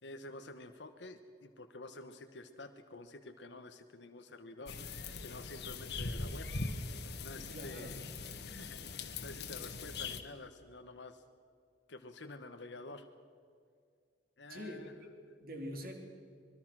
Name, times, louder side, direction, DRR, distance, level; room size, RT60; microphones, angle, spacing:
voice 1, 0.0-4.8 5.2-6.5 7.2-8.0 8.5-11.2 11.9-13.1 14.4-15.0, left 2 dB, 85° left, 6 dB, 1.3 m, -49 dB
sound 1, 4.7-10.2, left 3 dB, 65° left, 1.8 m, -41 dB
voice 2, 7.5-8.0 14.5-15.9, equal, 55° right, 3 dB, 3.6 m, -45 dB
25.5 x 21.5 x 6.3 m, 2.2 s
head